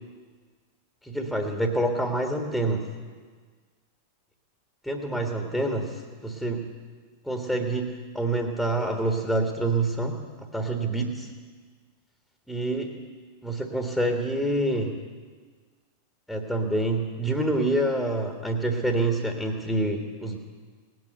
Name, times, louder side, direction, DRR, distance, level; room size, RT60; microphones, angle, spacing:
voice 1, 1.0-2.9 4.8-6.7 7.2-10.2 10.5-11.3 12.5-12.9 13.4-15.0 16.3-20.4, right 2 dB, ahead, 3 dB, 1.5 m, -27 dB
18.0 x 9.4 x 8.0 m, 1.5 s
figure-of-eight pair, 90°, 0 cm